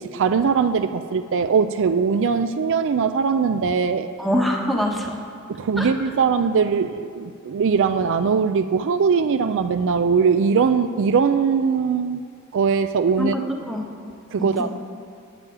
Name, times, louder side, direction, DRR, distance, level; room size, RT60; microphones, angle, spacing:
voice 1, 0.0-4.1 5.5-12.2 12.5-13.4 14.3-14.7, right 5 dB, 60° right, 10 dB, 0.4 m, -21 dB
voice 2, 4.2-5.2 5.8-5.9 13.2-13.8 14.4-14.7, equal, ahead, 0 dB, 1.0 m, -24 dB
8.9 x 6.9 x 8.6 m, 2.2 s
head